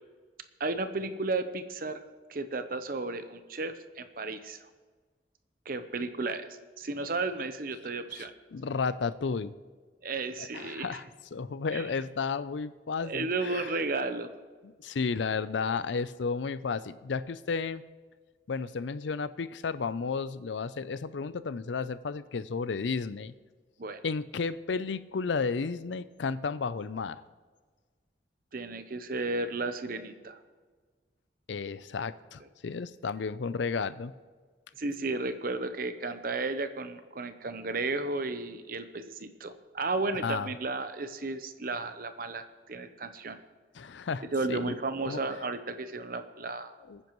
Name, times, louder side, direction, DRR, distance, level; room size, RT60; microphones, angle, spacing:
voice 1, 0.6-2.0 2.3-4.6 5.7-6.5 6.8-8.3 10.0-11.0 11.7-11.8 13.0-14.3 23.8-24.0 28.5-30.4 34.8-43.4 44.3-46.7, right 3 dB, 50° right, 10 dB, 0.8 m, -33 dB
voice 2, 8.1-9.5 10.4-11.0 11.3-13.7 14.6-17.8 18.5-23.3 24.0-27.2 31.5-34.1 40.2-40.5 43.7-44.7 45.1-45.2 46.9-47.0, left 5 dB, 85° left, 15 dB, 0.5 m, -33 dB
22.5 x 9.9 x 3.1 m, 1.4 s
head